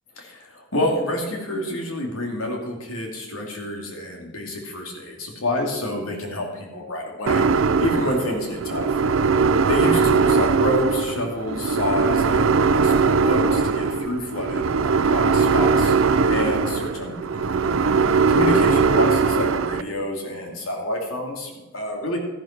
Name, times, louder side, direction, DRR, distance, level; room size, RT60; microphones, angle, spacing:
voice 1, 0.2-9.0 9.7-15.9 16.2-17.5 18.3-22.2, left 1 dB, 85° left, 1 dB, 2.7 m, -28 dB
sound 1, 7.3-19.8, right 5 dB, 70° right, 0.5 m, -20 dB
13.0 x 11.0 x 4.5 m, 1.1 s
head